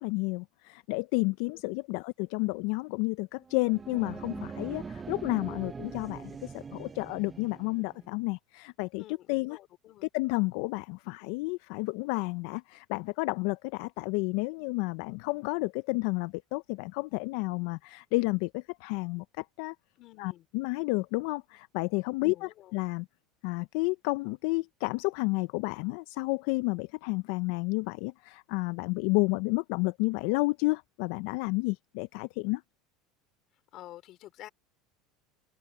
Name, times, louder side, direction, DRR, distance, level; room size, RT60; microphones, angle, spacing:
voice 1, 0.0-9.6 10.1-19.7 20.2-23.1 23.4-32.6, left 25 dB, 70° left, 0.4 m, -31 dB
sound 1, 3.4-8.1, right 5 dB, 20° right, 0.3 m, -42 dB
voice 2, 8.9-10.1 20.0-20.5 22.2-22.7 33.7-34.5, left 15 dB, 50° left, 3.3 m, -50 dB
open air
supercardioid pair, 130°, 0 cm